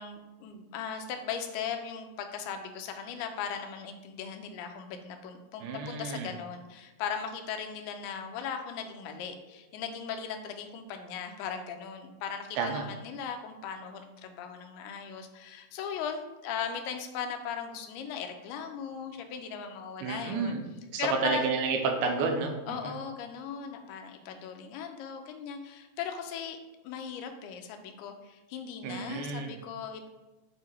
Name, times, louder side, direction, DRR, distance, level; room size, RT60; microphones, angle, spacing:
voice 1, 0.0-20.5 21.0-21.4 22.7-26.6 26.8-30.1, left 7 dB, 90° left, 5 dB, 2.6 m, -38 dB
voice 2, 5.6-6.3 12.6-12.8 20.0-20.6 20.9-22.9 28.8-29.5, right 4 dB, 85° right, 4 dB, 2.6 m, -30 dB
8.2 x 2.8 x 4.5 m, 1.1 s
omnidirectional pair, 4.5 m